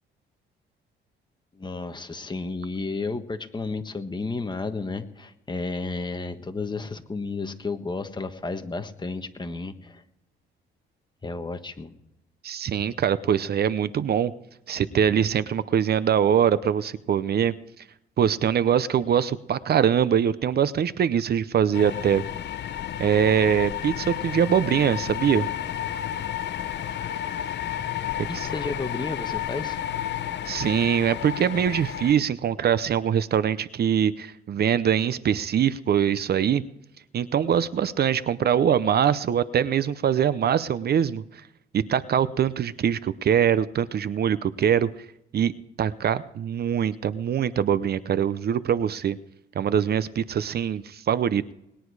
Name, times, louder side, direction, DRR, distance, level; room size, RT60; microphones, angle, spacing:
voice 1, 1.5-10.0 11.2-11.9 14.9-15.0 28.3-29.8 31.6-31.7, left 3 dB, 20° left, 7 dB, 1.4 m, -32 dB
voice 2, 12.4-14.3 14.7-17.5 18.2-22.2 23.0-25.5 28.3-28.5 30.4-36.6 37.1-41.2 41.7-44.9 45.3-45.5 45.8-49.2 49.6-51.5, right 8 dB, 55° right, 15 dB, 0.7 m, -23 dB
sound 1, 21.7-32.1, left 10 dB, 60° left, 0.9 m, -31 dB
20.0 x 10.0 x 4.8 m, 0.81 s
cardioid pair, 90°, 20 cm